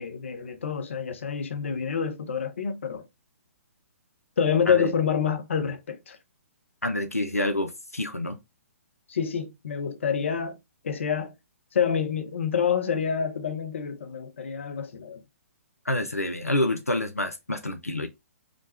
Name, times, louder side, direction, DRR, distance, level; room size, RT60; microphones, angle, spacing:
voice 1, 0.0-3.0 4.4-6.2 9.1-10.6 10.8-11.3 11.7-15.2, left 7 dB, 55° left, 0.7 m, -27 dB
voice 2, 6.8-8.4 15.9-18.1, left 1 dB, 90° left, 0.6 m, -27 dB
5.0 x 2.3 x 3.1 m
figure-of-eight pair, 125°, 8 cm